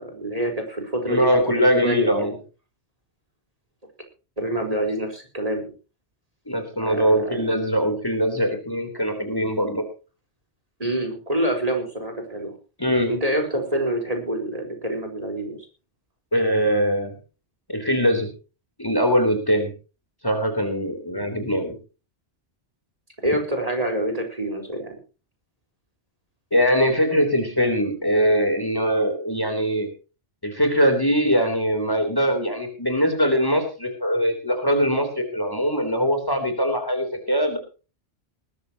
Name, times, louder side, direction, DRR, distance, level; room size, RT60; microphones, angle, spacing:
voice 1, 0.0-1.3 1.7-2.3 4.4-5.7 6.8-7.5 10.8-12.5 13.1-15.7 21.1-21.4 23.2-25.0, right 1 dB, 30° right, 4 dB, 4.5 m, -27 dB
voice 2, 1.1-2.4 6.5-9.8 12.8-13.2 16.3-17.1 17.7-18.3 18.8-19.7 20.2-21.8 26.5-29.9 30.4-37.6, equal, 20° left, 6 dB, 3.5 m, -22 dB
20.0 x 14.0 x 2.9 m, 0.34 s
omnidirectional pair, 1.2 m